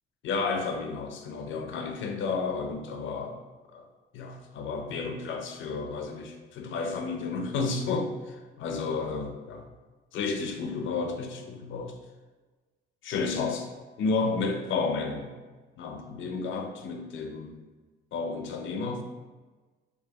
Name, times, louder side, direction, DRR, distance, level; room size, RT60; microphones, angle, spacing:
voice 1, 0.2-3.4 3.7-3.9 4.1-9.7 10.1-12.0 13.0-13.7 14.0-15.3 15.8-17.6 18.1-19.0, left 4 dB, 75° left, 5 dB, 0.6 m, -32 dB
4.7 x 2.7 x 2.8 m, 1.3 s
cardioid pair, 90°, 20 cm